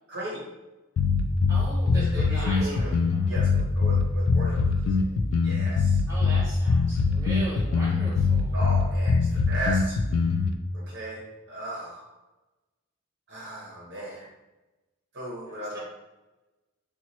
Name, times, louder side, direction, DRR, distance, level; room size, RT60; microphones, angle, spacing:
voice 1, 0.1-0.5 1.9-2.9 3.3-5.1 5.4-6.0 8.5-10.0 10.7-12.1 13.3-14.3 15.1-15.8, right 1 dB, 55° right, -5 dB, 0.8 m, -36 dB
sound 1, 1.0-10.5, left 4 dB, 70° left, 0.3 m, -23 dB
voice 2, 1.5-3.3 6.1-8.6 15.7-15.8, right 1 dB, 15° right, -6 dB, 1.1 m, -39 dB
2.9 x 2.2 x 4.0 m, 1.1 s
head